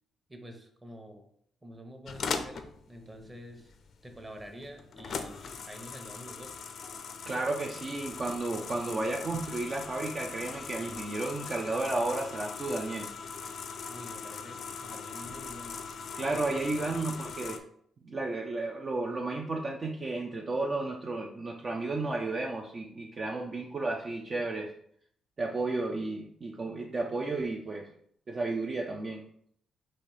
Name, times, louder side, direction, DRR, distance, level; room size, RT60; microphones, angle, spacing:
voice 1, 0.3-1.3 1.6-3.7 4.0-6.5 13.9-15.8 16.3-17.5, equal, 20° right, 4 dB, 1.0 m, -48 dB
sound 1, 2.1-17.6, left 5 dB, 65° left, 0.5 m, -40 dB
voice 2, 7.3-13.1 16.2-17.6 18.0-24.7 25.4-27.9 28.3-29.2, right 2 dB, 40° right, 0 dB, 0.5 m, -33 dB
4.2 x 2.6 x 4.9 m, 0.66 s
cardioid pair, 80°, 0 cm